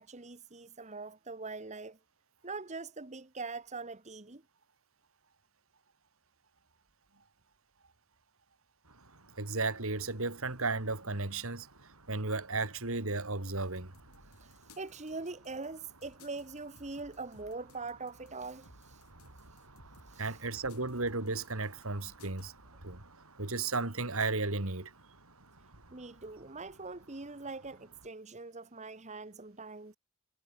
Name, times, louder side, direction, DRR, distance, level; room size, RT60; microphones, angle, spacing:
voice 1, 0.0-2.0 2.4-4.4 14.4-19.0 20.1-20.4 25.9-30.0, right 3 dB, 30° right, 1.3 m, -43 dB
sound 1, 8.8-28.1, right 2 dB, 90° right, 6.9 m, -59 dB
voice 2, 9.4-13.9 20.2-22.5 22.8-23.0 23.4-24.9, right 3 dB, 65° right, 2.6 m, -34 dB
sound 2, 13.6-22.5, left 3 dB, 75° left, 6.6 m, -60 dB
head